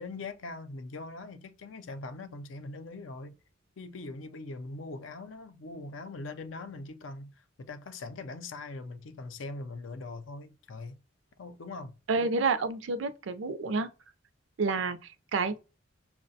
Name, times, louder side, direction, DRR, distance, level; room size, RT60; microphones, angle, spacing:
voice 1, 0.0-3.4 3.8-11.0 11.4-12.0, left 3 dB, 80° left, 0.5 m, -41 dB
voice 2, 12.1-13.9 14.6-15.6, right 4 dB, 70° right, 0.4 m, -29 dB
5.6 x 2.1 x 2.6 m
head